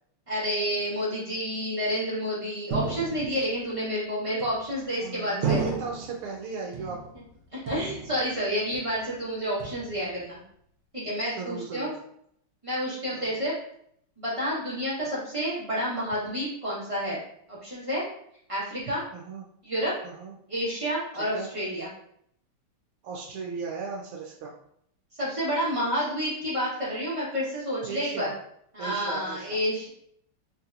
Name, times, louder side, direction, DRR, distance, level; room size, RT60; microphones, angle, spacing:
voice 1, 0.3-5.6 7.5-10.4 10.9-11.9 12.6-13.6 14.2-17.2 17.5-18.0 18.5-19.0 19.6-19.9 20.5-21.9 25.2-28.3 28.7-29.9, equal, 20° right, -9 dB, 0.9 m, -29 dB
sound 1, 2.7-3.6 4.4-4.9 5.4-6.2 6.7-7.3 7.7-8.4 8.7-9.2 9.6-10.2, right 5 dB, 70° right, 1.4 m, -32 dB
voice 2, 5.0-7.0 11.4-11.9 13.1-13.4 19.1-19.4 20.0-20.3 21.3-21.5 23.0-24.5 27.9-28.3 28.8-29.6, right 5 dB, 90° right, -1 dB, 1.5 m, -36 dB
3.8 x 2.8 x 2.5 m, 0.69 s
omnidirectional pair, 2.4 m